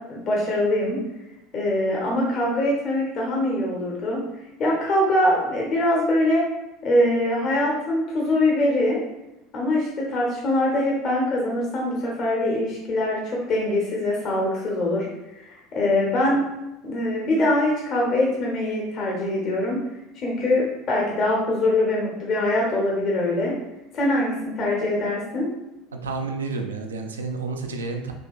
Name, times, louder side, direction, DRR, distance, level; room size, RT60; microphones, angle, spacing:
voice 1, 0.1-1.0 1.5-4.2 4.6-6.4 6.8-9.0 9.5-13.2 13.5-15.1 15.4-16.4 16.8-19.8 20.2-23.5 23.9-25.5, left 1 dB, 45° left, -3 dB, 0.8 m, -23 dB
voice 2, 26.0-28.1, right 4 dB, 80° right, 4 dB, 0.3 m, -30 dB
3.6 x 2.9 x 2.3 m, 0.98 s
figure-of-eight pair, 70°, 0 cm